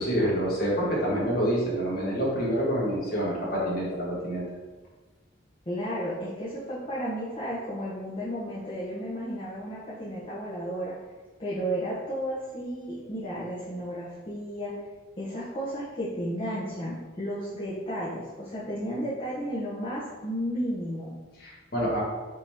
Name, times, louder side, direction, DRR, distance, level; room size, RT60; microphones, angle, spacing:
voice 1, 0.0-4.4 21.4-22.0, equal, 50° left, -6 dB, 1.5 m, -27 dB
voice 2, 5.7-10.9 11.4-14.7 15.2-21.1, equal, 30° left, -9 dB, 0.9 m, -33 dB
5.3 x 2.9 x 3.4 m, 1.3 s
head